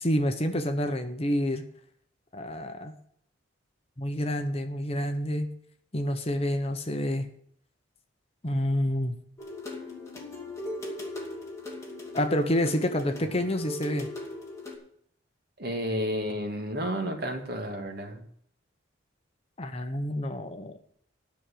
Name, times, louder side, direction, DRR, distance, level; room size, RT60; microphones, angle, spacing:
voice 1, 0.0-1.6 2.3-2.9 4.0-5.5 5.9-7.3 8.4-9.2 12.1-14.1 19.6-20.8, equal, 30° left, 7 dB, 1.0 m, -28 dB
sound 1, 9.4-14.8, left 1 dB, 15° left, 2.6 m, -39 dB
voice 2, 15.6-18.2, equal, 50° right, 3 dB, 2.2 m, -31 dB
11.0 x 6.3 x 8.7 m, 0.65 s
head